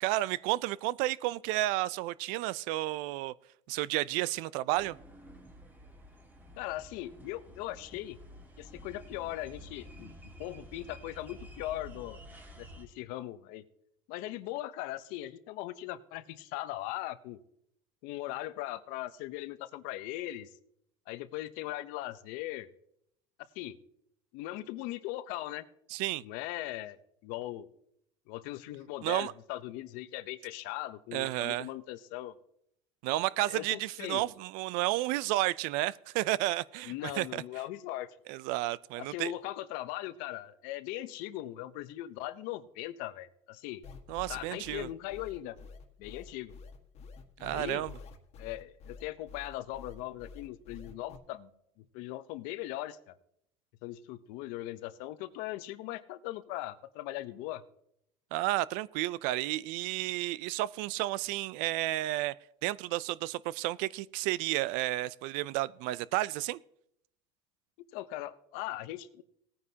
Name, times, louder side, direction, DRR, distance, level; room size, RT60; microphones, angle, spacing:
voice 1, 0.0-3.3 3.7-5.0 25.9-26.2 29.0-29.3 31.1-31.7 33.0-37.4 38.3-39.3 44.1-44.9 47.4-47.9 58.3-62.3 62.6-66.6, right 17 dB, 65° right, 0.4 m, -32 dB
sound 1, 4.7-12.9, equal, 10° right, 1.6 m, -51 dB
voice 2, 6.6-8.2 8.6-12.2 12.6-13.6 14.1-17.4 18.0-20.5 21.1-22.7 23.5-23.8 24.3-25.7 26.2-27.7 28.3-32.3 33.5-34.2 36.8-38.1 39.0-43.8 44.3-45.6 46.0-46.5 47.4-47.9 48.4-51.5 51.8-53.1 53.8-57.6 67.9-69.2, left 15 dB, 70° left, 0.8 m, -39 dB
sound 2, 43.8-51.2, left 4 dB, 45° left, 1.6 m, -48 dB
18.0 x 9.4 x 2.8 m
supercardioid pair, 120°, 15 cm